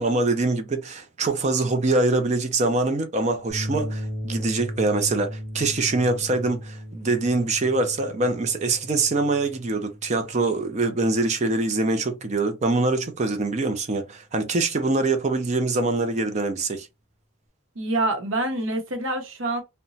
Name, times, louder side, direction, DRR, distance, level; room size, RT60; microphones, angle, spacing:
voice 1, 0.0-16.9, right 3 dB, 35° right, 0.5 m, -24 dB
sound 1, 3.5-12.0, equal, 15° right, 0.9 m, -36 dB
voice 2, 17.8-19.6, right 2 dB, 80° right, 0.8 m, -26 dB
2.9 x 2.1 x 2.6 m
head